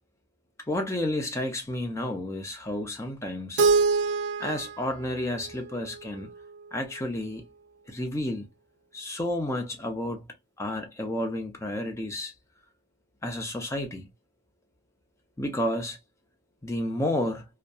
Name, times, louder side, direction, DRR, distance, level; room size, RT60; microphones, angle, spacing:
voice 1, 0.7-3.6 4.4-6.3 6.7-7.4 7.9-8.5 8.9-10.2 10.6-12.3 13.2-14.0 15.4-16.0 16.6-17.4, left 1 dB, 15° left, 0.5 m, -31 dB
Keyboard (musical), 3.6-6.5, right 4 dB, 75° right, 0.4 m, -26 dB
2.6 x 2.2 x 2.2 m
head